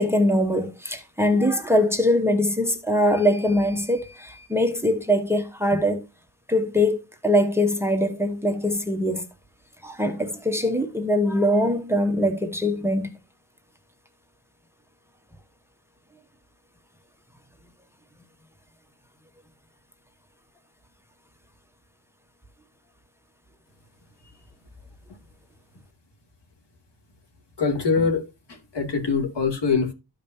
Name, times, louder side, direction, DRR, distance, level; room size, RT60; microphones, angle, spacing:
voice 1, 0.0-6.1 6.5-9.3 9.8-13.2, left 1 dB, 5° right, 1.1 m, -22 dB
voice 2, 27.6-29.9, left 5 dB, 75° left, 2.7 m, -24 dB
13.5 x 5.2 x 2.8 m
wide cardioid pair, 155°, 42 cm